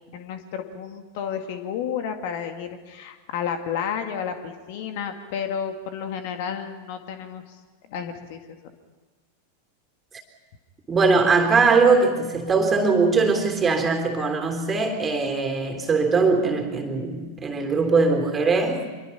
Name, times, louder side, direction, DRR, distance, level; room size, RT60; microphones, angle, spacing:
voice 1, 0.0-7.6 7.9-8.4, left 7 dB, 50° left, 6 dB, 2.1 m, -31 dB
voice 2, 10.9-18.9, right 4 dB, 20° right, 4 dB, 3.6 m, -21 dB
26.0 x 23.0 x 5.9 m, 1.4 s
figure-of-eight pair, 90°, 0 cm